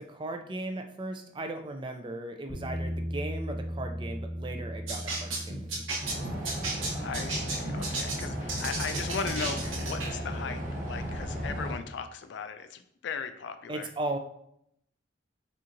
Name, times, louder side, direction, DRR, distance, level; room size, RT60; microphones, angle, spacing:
voice 1, 0.0-5.8 13.7-14.2, right 2 dB, 25° right, 6 dB, 0.3 m, -37 dB
Bass guitar, 2.5-8.7, equal, 25° left, 0.8 m, -38 dB
sound 1, 4.9-10.2, right 2 dB, 80° right, 0.9 m, -35 dB
sound 2, 6.0-11.7, equal, 40° right, 0.8 m, -35 dB
voice 2, 6.9-13.9, left 6 dB, 60° left, 10 dB, 0.3 m, -37 dB
4.3 x 3.7 x 2.5 m, 0.73 s
head